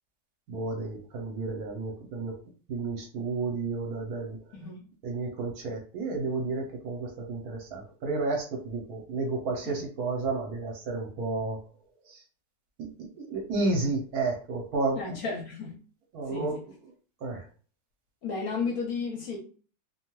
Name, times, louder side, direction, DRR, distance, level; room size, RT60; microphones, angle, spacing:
voice 1, 0.5-2.4 2.7-4.4 5.0-11.6 12.1-12.2 12.8-12.9 13.2-15.2 16.1-16.6 17.2-17.5, right 3 dB, 65° right, 1.1 m, -31 dB
voice 2, 4.5-4.9 9.6-9.8 14.9-15.8 16.3-16.6 18.2-19.4, left 4 dB, 65° left, 0.9 m, -33 dB
2.8 x 2.2 x 2.9 m
omnidirectional pair, 1.9 m